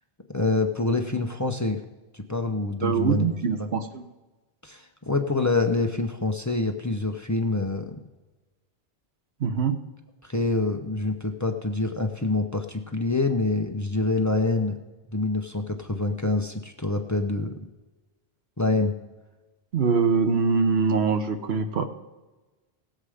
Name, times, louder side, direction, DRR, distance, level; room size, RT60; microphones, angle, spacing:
voice 1, 0.3-1.8 2.1-3.7 4.6-8.0 10.2-14.8 15.1-17.5 18.6-18.9, left 2 dB, 20° left, 5 dB, 0.8 m, -26 dB
voice 2, 2.8-4.0 9.4-9.8 19.7-21.9, right 5 dB, 85° right, 8 dB, 1.2 m, -23 dB
18.0 x 7.6 x 5.0 m, 1.2 s
omnidirectional pair, 1.0 m